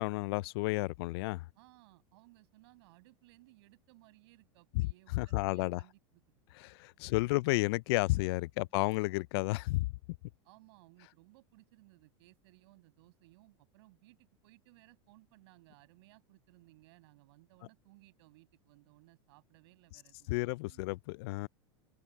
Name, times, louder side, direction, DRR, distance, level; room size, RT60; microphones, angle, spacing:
voice 1, 0.0-1.4 5.1-5.8 6.6-9.9 20.3-21.5, left 22 dB, 65° left, 0.4 m, -32 dB
voice 2, 1.5-6.4 7.1-7.5 8.2-8.3 10.4-20.8, right 22 dB, 70° right, 5.8 m, -62 dB
supercardioid pair, 115°, 14 cm